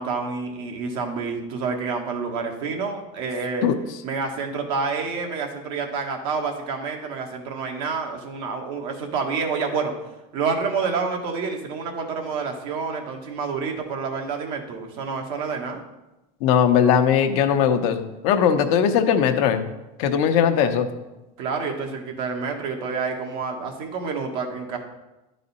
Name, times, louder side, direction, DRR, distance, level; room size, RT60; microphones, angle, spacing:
voice 1, 0.0-3.7 4.0-9.9 10.3-15.8 21.4-24.8, right 5 dB, 75° right, 2 dB, 1.4 m, -28 dB
voice 2, 16.4-19.6 20.0-20.9, left 8 dB, 70° left, 7 dB, 0.8 m, -19 dB
10.5 x 4.1 x 4.1 m, 1.0 s
supercardioid pair, 110°, 19 cm